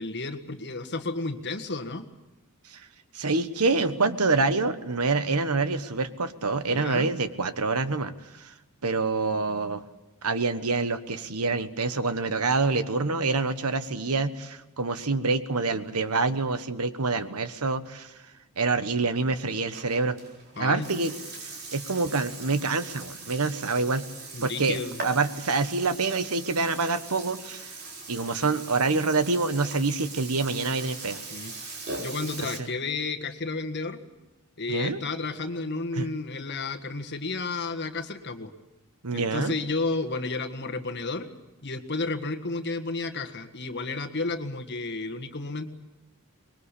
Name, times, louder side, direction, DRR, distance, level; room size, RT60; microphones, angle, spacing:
voice 1, 0.0-2.0 6.7-7.1 20.6-20.9 24.3-25.0 31.3-31.5 32.0-34.0 34.6-38.5 39.1-41.3 41.6-45.7, left 3 dB, 50° left, 6 dB, 1.7 m, -32 dB
voice 2, 3.1-8.5 8.8-9.8 10.2-18.1 18.6-20.2 20.6-21.1 21.4-24.0 24.4-27.7 28.1-31.2 31.6-31.8 32.4-32.7 34.7-35.0 35.9-36.1 39.0-39.5, right 3 dB, 85° right, 11 dB, 1.3 m, -26 dB
Burping eructation, 19.4-32.6, right 3 dB, 45° right, 4.4 m, -41 dB
24.5 x 21.5 x 8.4 m, 1.0 s
head